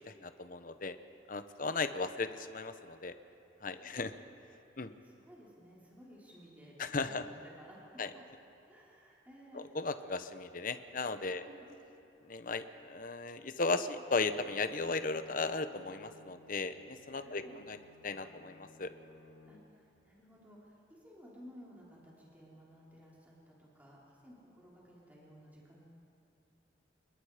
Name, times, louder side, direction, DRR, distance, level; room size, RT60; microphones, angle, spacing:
voice 1, 0.1-1.0 1.3-3.1 3.6-4.1 4.8-4.9 6.8-7.3 8.0-8.1 9.5-11.4 12.2-17.8 18.0-18.9, left 3 dB, 45° left, 10 dB, 0.9 m, -36 dB
voice 2, 3.7-4.1 4.7-8.2 8.7-9.6 11.2-11.7 17.2-17.6 19.5-19.6 20.0-24.0 24.2-25.9, equal, 10° right, -6 dB, 4.1 m, -56 dB
Bowed string instrument, 14.0-20.0, left 3 dB, 65° left, 2.0 m, -60 dB
28.0 x 21.5 x 5.0 m, 2.8 s
head